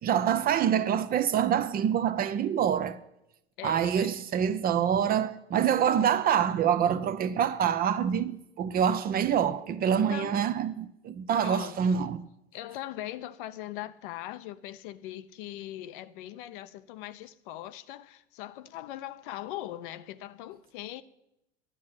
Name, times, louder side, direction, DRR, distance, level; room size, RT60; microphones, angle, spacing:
voice 1, 0.0-3.0 3.6-12.2, right 8 dB, 25° right, 0.7 m, -26 dB
voice 2, 3.6-4.2 9.9-10.5 11.4-12.0 12.5-21.0, left 14 dB, 50° left, 0.8 m, -40 dB
11.0 x 8.4 x 8.7 m
figure-of-eight pair, 80°, 33 cm